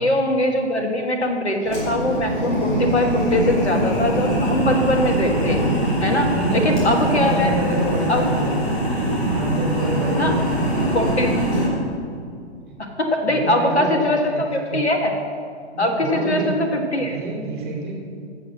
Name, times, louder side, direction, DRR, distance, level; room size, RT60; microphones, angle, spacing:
voice 1, 0.0-5.6 6.0-7.5 8.1-8.2 10.1-10.3 10.9-11.3 12.8-14.3 14.7-15.1 15.8-17.2, left 1 dB, 70° left, 3 dB, 1.6 m, -21 dB
sound 1, 1.6-11.7, right 1 dB, 20° left, 3.3 m, -22 dB
voice 2, 6.3-8.8 9.3-11.3 13.3-14.0 14.3-14.9 15.7-16.6 17.0-17.9, right 3 dB, 45° right, -1 dB, 3.2 m, -28 dB
15.0 x 6.1 x 6.2 m, 2.3 s
figure-of-eight pair, 130°, 34 cm